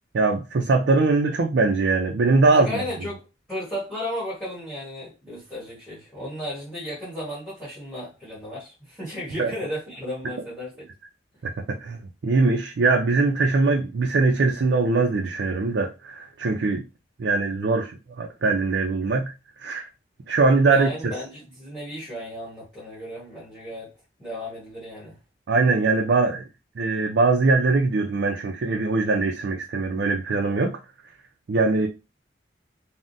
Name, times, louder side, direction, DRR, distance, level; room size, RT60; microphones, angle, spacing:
voice 1, 0.1-2.8 9.4-9.5 11.4-12.0 12.2-16.8 17.2-19.3 19.6-19.9 20.3-20.9 25.5-26.4 26.8-30.8 31.5-31.9, right 3 dB, 75° right, 0.4 m, -21 dB
voice 2, 2.4-10.9 20.6-23.9 24.2-25.2, left 1 dB, 5° left, 1.4 m, -34 dB
3.5 x 2.1 x 2.6 m
head